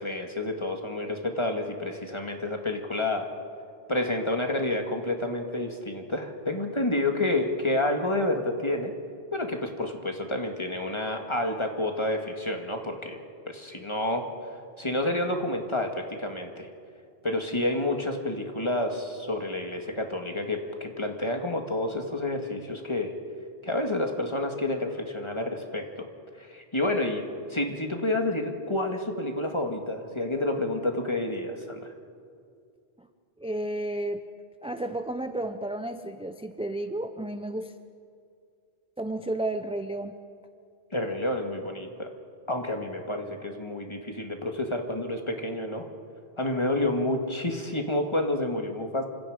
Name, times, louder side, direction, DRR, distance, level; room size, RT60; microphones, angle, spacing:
voice 1, 0.0-3.3 3.9-8.9 9.3-13.2 13.5-14.3 14.8-16.7 17.2-23.1 23.6-26.1 26.5-27.2 27.5-31.9 40.9-42.1 42.5-45.9 46.4-49.1, left 1 dB, 25° left, 3 dB, 2.0 m, -29 dB
voice 2, 33.4-34.2 34.6-37.7 39.0-40.1, right 1 dB, 5° right, 8 dB, 0.6 m, -32 dB
28.0 x 26.0 x 5.0 m, 2.3 s
omnidirectional pair, 1.1 m